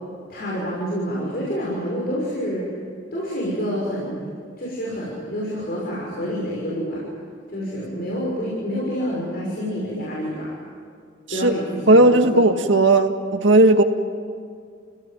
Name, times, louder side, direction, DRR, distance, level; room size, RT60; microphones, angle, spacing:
voice 1, 0.3-2.7 3.1-4.1 4.6-7.0 7.5-10.5 11.3-12.4, equal, 55° left, -5 dB, 6.3 m, -28 dB
voice 2, 11.9-13.8, right 2 dB, 80° right, 6 dB, 1.9 m, -15 dB
29.5 x 17.5 x 9.1 m, 2.2 s
head